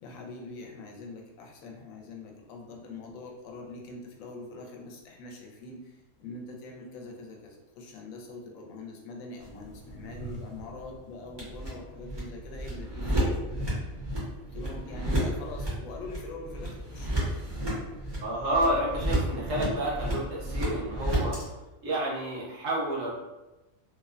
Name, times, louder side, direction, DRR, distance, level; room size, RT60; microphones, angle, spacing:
voice 1, 0.0-13.7 14.5-17.5, left 3 dB, 80° left, 0 dB, 1.0 m, -43 dB
sound 1, 9.4-21.4, right 1 dB, 30° right, 0.4 m, -32 dB
voice 2, 18.2-21.4 21.8-23.1, right 1 dB, 70° right, -5 dB, 1.2 m, -30 dB
2.8 x 2.1 x 2.3 m, 1.0 s
omnidirectional pair, 1.4 m